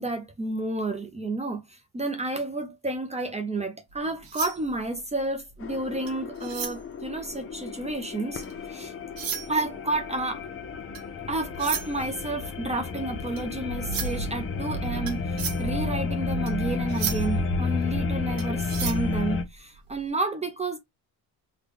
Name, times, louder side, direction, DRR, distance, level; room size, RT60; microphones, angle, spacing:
voice 1, 0.0-8.9 9.5-10.4 11.3-20.8, right 2 dB, 15° right, 0.6 m, -31 dB
sound 1, 3.9-8.7 9.0-20.0, right 8 dB, 65° right, 1.1 m, -37 dB
sound 2, 5.6-19.4, left 3 dB, 35° left, 0.7 m, -31 dB
3.8 x 2.3 x 3.3 m
cardioid pair, 135°, 38 cm